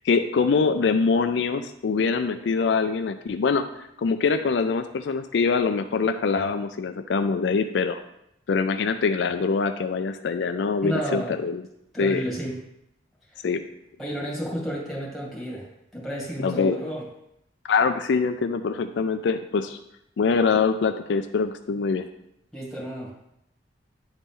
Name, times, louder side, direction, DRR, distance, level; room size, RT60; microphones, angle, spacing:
voice 1, 0.0-8.0 8.5-11.6 12.0-12.2 13.4-13.6 16.4-16.8 17.7-19.8 20.2-22.1, left 5 dB, 70° left, 8 dB, 0.4 m, -24 dB
voice 2, 10.8-11.3 11.9-12.6 13.3-13.5 14.0-15.7 15.9-17.1 22.5-23.1, equal, ahead, -4 dB, 2.1 m, -31 dB
9.9 x 4.0 x 3.7 m, 0.80 s
head